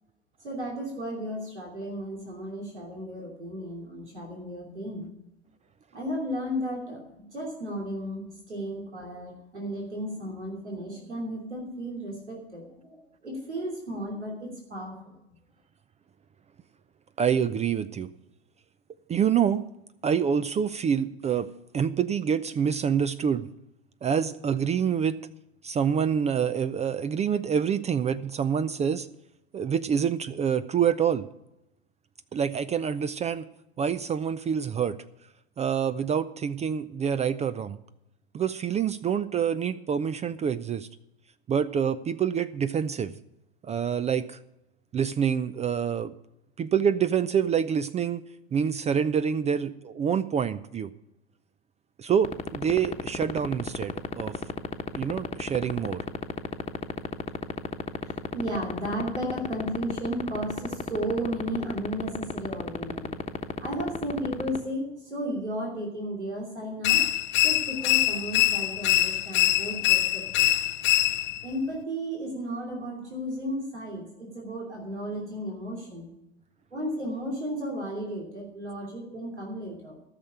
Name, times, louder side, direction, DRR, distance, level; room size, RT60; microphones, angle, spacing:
voice 1, 0.4-5.1 5.9-15.2 57.8-63.1 63.6-67.0 67.4-70.5 71.4-76.1 76.7-80.0, equal, 90° right, -2 dB, 3.0 m, -34 dB
voice 2, 17.2-18.1 19.1-19.6 20.0-21.5 21.7-23.5 24.0-25.2 25.6-29.1 29.5-31.3 32.3-33.4 33.8-35.0 35.6-37.8 38.3-40.9 41.5-43.1 43.6-44.4 44.9-46.1 46.6-48.2 48.5-50.9 52.0-54.4 54.9-56.0, right 7 dB, 20° right, 14 dB, 0.4 m, -26 dB
sound 1, 52.2-64.6, left 5 dB, 20° left, 1.2 m, -29 dB
sound 2, 66.8-71.5, left 15 dB, 35° left, 0.6 m, -24 dB
14.0 x 6.6 x 8.4 m, 0.87 s
figure-of-eight pair, 80°, 33 cm